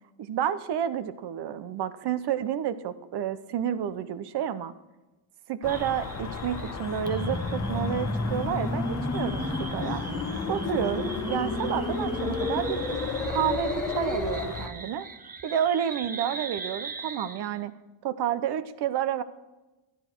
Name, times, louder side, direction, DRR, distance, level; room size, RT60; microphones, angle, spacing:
voice 1, 0.2-4.7 5.5-10.0 10.5-13.0 13.3-15.1 15.4-17.7 18.0-19.2, right 9 dB, 55° right, 13 dB, 0.8 m, -30 dB
sound 1, 5.6-14.7, left 5 dB, 35° left, 1.0 m, -37 dB
sound 2, 5.7-17.6, right 5 dB, 20° right, 0.5 m, -42 dB
sound 3, 7.1-14.5, left 2 dB, 15° left, 2.5 m, -31 dB
13.5 x 12.0 x 4.6 m, 1.1 s
cardioid pair, 170°, 48 cm